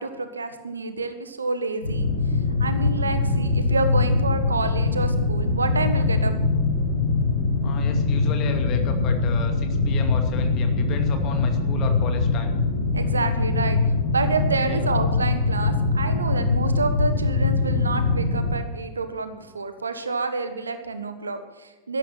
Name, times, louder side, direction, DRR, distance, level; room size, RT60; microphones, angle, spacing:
voice 1, 0.0-2.1 2.6-6.3 12.9-13.8 14.1-22.0, right 3 dB, 75° right, 9 dB, 1.4 m, -28 dB
sound 1, 1.8-18.5, left 3 dB, 80° left, 4.6 m, -22 dB
voice 2, 7.6-12.5 14.6-14.9, left 6 dB, 35° left, 4 dB, 2.5 m, -34 dB
13.0 x 12.0 x 6.1 m, 1.3 s
figure-of-eight pair, 90°, 0 cm